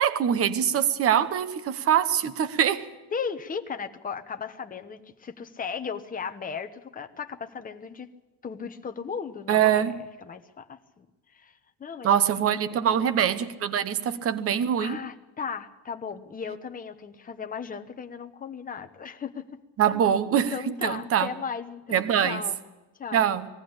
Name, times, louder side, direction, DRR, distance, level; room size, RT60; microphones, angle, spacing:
voice 1, 0.0-2.9 9.5-10.0 12.0-15.0 19.8-20.5 20.8-21.3 21.9-22.4 23.1-23.5, right 9 dB, 30° right, 11 dB, 1.0 m, -23 dB
voice 2, 3.1-8.1 8.4-11.1 11.3-13.1 14.8-19.5 20.5-22.6 23.0-23.2, left 6 dB, 15° left, 7 dB, 1.0 m, -36 dB
21.0 x 15.0 x 8.7 m, 1.1 s
cardioid pair, 160°, 49 cm